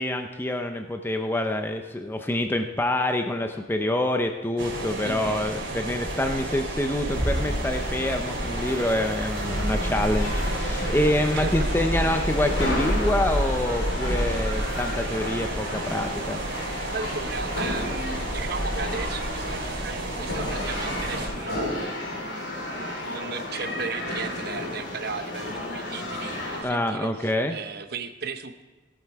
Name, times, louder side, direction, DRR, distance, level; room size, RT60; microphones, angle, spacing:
voice 1, 0.0-16.4 26.6-27.6, left 1 dB, 10° left, 5 dB, 0.5 m, -26 dB
sound 1, 4.6-21.3, right 1 dB, 90° right, 2.8 m, -29 dB
voice 2, 5.0-5.4 11.3-11.8 16.9-28.6, right 5 dB, 55° right, 9 dB, 0.7 m, -36 dB
sound 2, 7.1-26.6, left 1 dB, 70° left, 3.0 m, -34 dB
17.0 x 7.4 x 4.6 m, 1.2 s
head